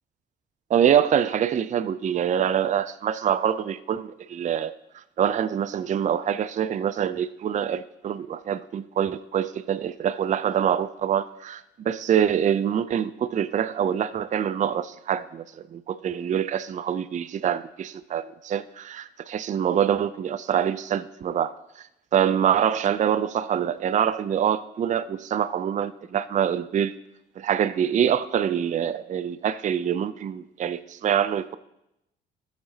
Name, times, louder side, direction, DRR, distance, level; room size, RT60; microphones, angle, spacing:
voice 1, 0.7-21.5 21.8-21.9 22.1-26.9 27.4-31.6, right 9 dB, 40° right, 0.4 m, -25 dB
14.5 x 7.3 x 2.8 m
cardioid pair, 90°, 20 cm